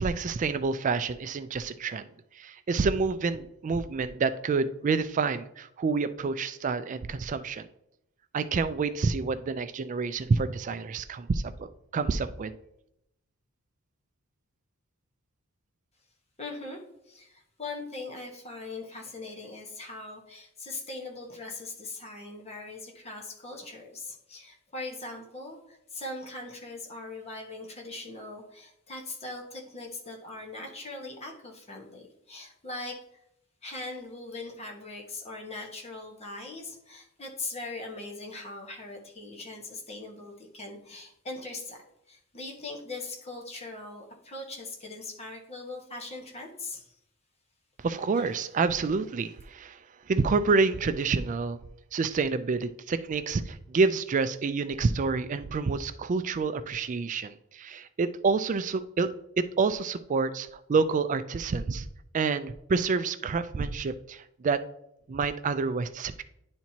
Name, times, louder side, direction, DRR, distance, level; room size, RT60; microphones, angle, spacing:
voice 1, 0.0-2.1 2.3-7.7 8.3-12.5 47.8-49.8 50.1-51.6 51.9-59.1 59.4-61.9 62.1-64.6 65.1-66.2, right 4 dB, 35° right, 12 dB, 0.3 m, -28 dB
voice 2, 16.4-16.8 17.1-33.2 33.6-46.9 48.2-48.3, left 2 dB, 30° left, 1 dB, 1.3 m, -40 dB
10.5 x 4.4 x 2.8 m, 0.79 s
head